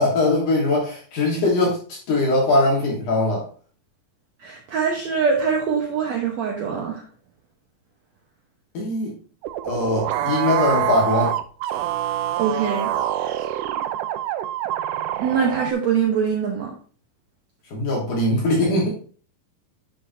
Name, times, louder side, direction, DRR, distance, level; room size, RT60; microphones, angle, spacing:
voice 1, 0.0-1.8 2.1-3.5 8.7-9.2 9.6-11.4 17.7-18.9, left 2 dB, 60° left, -3 dB, 2.9 m, -21 dB
voice 2, 4.4-7.0 12.4-12.9 13.2-13.4 15.2-16.7, right 6 dB, 65° right, 0 dB, 1.9 m, -23 dB
sound 1, 9.4-15.7, right 12 dB, 85° right, 1.8 m, -26 dB
11.0 x 6.0 x 2.7 m, 0.42 s
omnidirectional pair, 4.3 m